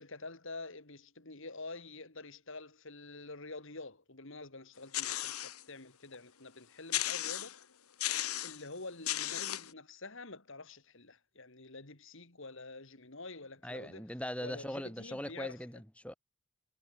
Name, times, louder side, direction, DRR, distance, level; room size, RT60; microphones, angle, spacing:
voice 1, 0.0-7.6 8.4-14.0 14.4-15.6, left 3 dB, 60° left, 2.7 m, -47 dB
sound 1, 4.9-5.6 6.1-6.2 6.9-7.6 8.0-8.6 9.1-9.7, left 13 dB, 80° left, 1.6 m, -35 dB
voice 2, 13.6-16.1, equal, 5° left, 4.4 m, -40 dB
head